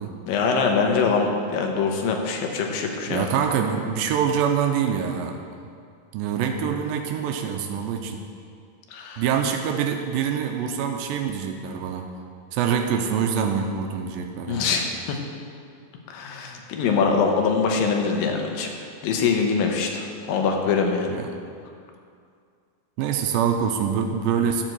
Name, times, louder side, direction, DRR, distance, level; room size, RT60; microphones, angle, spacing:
voice 1, 0.3-3.2 8.9-9.2 14.5-15.2 16.1-18.7 19.0-21.1, left 5 dB, 90° left, 2 dB, 2.7 m, -23 dB
voice 2, 3.1-5.4 6.1-8.2 9.2-12.1 12.5-14.7 21.1-21.3 23.0-24.6, right 7 dB, 90° right, 4 dB, 2.4 m, -25 dB
12.5 x 4.5 x 7.7 m, 2.3 s
omnidirectional pair, 4.0 m